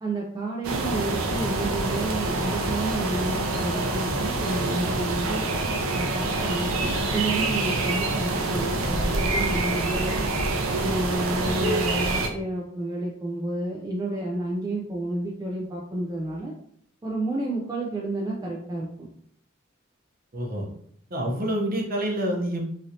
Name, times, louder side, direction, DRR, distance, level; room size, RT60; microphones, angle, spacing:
voice 1, 0.0-5.5 5.9-10.3 10.8-16.5 17.0-19.1, right 2 dB, 20° right, -3 dB, 0.3 m, -30 dB
sound 1, 0.6-12.3, right 2 dB, 85° right, 0.5 m, -26 dB
voice 2, 20.3-20.7 21.1-22.7, right 1 dB, 45° right, 0 dB, 0.7 m, -27 dB
3.1 x 2.6 x 2.7 m, 0.66 s
head